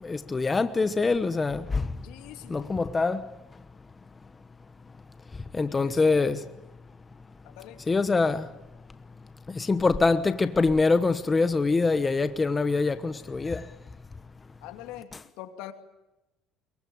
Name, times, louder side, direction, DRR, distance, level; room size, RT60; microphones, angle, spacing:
voice 1, 0.0-1.9 2.5-3.3 5.5-6.4 7.9-8.5 9.5-13.7, left 3 dB, 20° left, 1.1 m, -24 dB
voice 2, 2.0-2.8 5.7-6.4 7.4-7.8 14.6-15.7, left 13 dB, 85° left, 2.5 m, -44 dB
23.0 x 23.0 x 8.7 m
cardioid pair, 115°, 0 cm